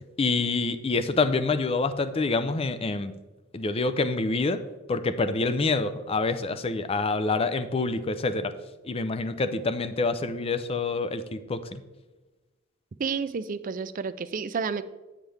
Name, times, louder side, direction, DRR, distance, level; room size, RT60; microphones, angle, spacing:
voice 1, 0.2-3.1 3.5-8.5 8.8-11.8, left 3 dB, 30° left, 11 dB, 0.5 m, -27 dB
voice 2, 13.0-14.8, right 5 dB, 45° right, 13 dB, 0.4 m, -30 dB
9.1 x 7.3 x 3.3 m, 1.2 s
head